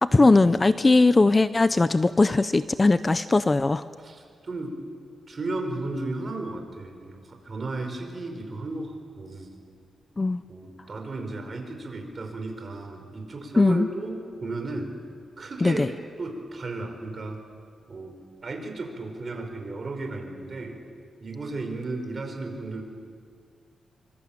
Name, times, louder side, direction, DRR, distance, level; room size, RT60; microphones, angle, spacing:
voice 1, 0.0-3.8 10.2-10.4 13.6-13.9 15.6-15.9, left 3 dB, 25° left, 13 dB, 0.6 m, -19 dB
voice 2, 4.0-4.8 5.3-9.5 10.5-14.9 15.4-15.8 16.2-17.4 17.9-18.2 18.4-20.8 21.2-22.8, right 2 dB, 35° right, 4 dB, 5.0 m, -34 dB
26.0 x 25.0 x 8.8 m, 2.1 s
wide cardioid pair, 120°, 0 cm